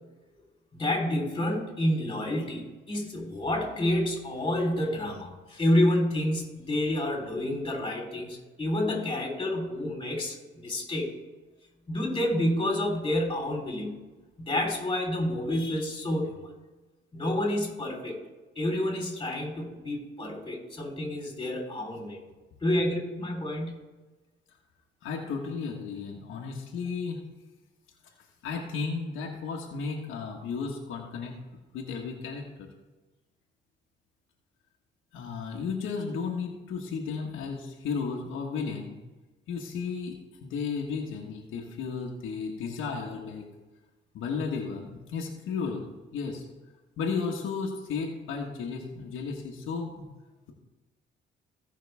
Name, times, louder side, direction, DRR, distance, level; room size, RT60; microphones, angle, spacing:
voice 1, 0.7-11.1 11.9-13.9 14.4-16.5 17.1-18.2 18.6-22.2 22.6-23.8, left 1 dB, 25° left, 0 dB, 3.7 m, -29 dB
voice 2, 25.0-27.2 28.4-31.3 31.7-32.7 35.1-38.9 39.5-43.5 44.1-45.8 46.1-46.4 47.0-50.1, left 5 dB, 85° left, 0 dB, 1.4 m, -34 dB
16.5 x 5.7 x 3.5 m, 1.2 s
cardioid pair, 90°, 20 cm